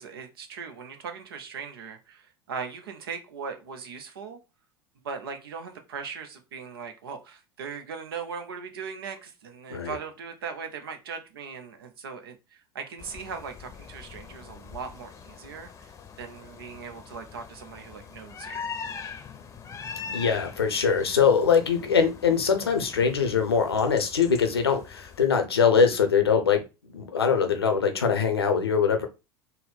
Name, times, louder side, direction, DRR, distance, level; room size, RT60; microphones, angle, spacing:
voice 1, 0.0-4.4 5.0-15.9 16.2-18.6, right 6 dB, 70° right, 0.8 m, -39 dB
sound 1, 13.0-25.3, left 6 dB, 25° left, 0.7 m, -42 dB
voice 2, 20.1-26.6 26.9-29.1, left 6 dB, 85° left, 0.7 m, -22 dB
4.0 x 2.1 x 4.1 m
figure-of-eight pair, 80°, 13 cm